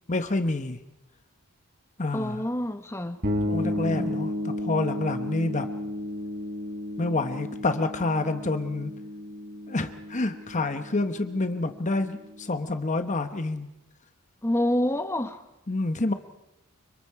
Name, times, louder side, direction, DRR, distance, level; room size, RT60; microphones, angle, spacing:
voice 1, 0.1-0.8 2.0-2.4 3.5-5.7 7.0-8.9 9.7-13.7 15.7-16.1, left 2 dB, 35° left, 1.1 m, -28 dB
voice 2, 2.1-3.2 3.6-4.2 14.4-15.4, left 1 dB, 10° left, 1.2 m, -28 dB
sound 1, 3.2-12.8, left 1 dB, 45° right, 4.2 m, -33 dB
29.5 x 25.5 x 4.8 m
head